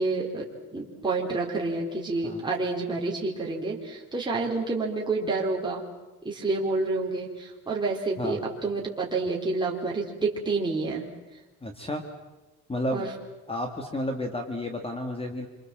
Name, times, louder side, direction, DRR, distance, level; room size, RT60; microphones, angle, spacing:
voice 1, 0.0-5.9 6.2-11.1 12.9-13.1, right 3 dB, 15° right, -3 dB, 3.8 m, -29 dB
voice 2, 11.6-12.0 12.7-13.1 13.5-15.5, left 1 dB, 15° left, 5 dB, 2.2 m, -31 dB
27.5 x 26.0 x 7.6 m, 1.1 s
cardioid pair, 150°, 33 cm